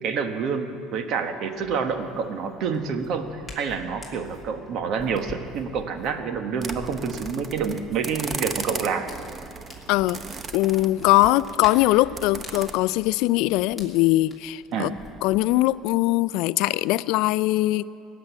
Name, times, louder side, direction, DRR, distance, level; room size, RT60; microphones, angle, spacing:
voice 1, 0.0-9.1 14.7-14.9, right 6 dB, 55° right, 7 dB, 1.3 m, -28 dB
Hands, 1.5-15.6, left 2 dB, ahead, 2.9 m, -47 dB
sound 1, 6.6-12.7, right 4 dB, 25° right, 0.8 m, -37 dB
voice 2, 9.9-10.2 10.5-14.9 15.2-17.8, left 17 dB, 75° left, 18 dB, 0.3 m, -21 dB
18.5 x 7.7 x 9.9 m, 2.5 s
cardioid pair, 120°, 0 cm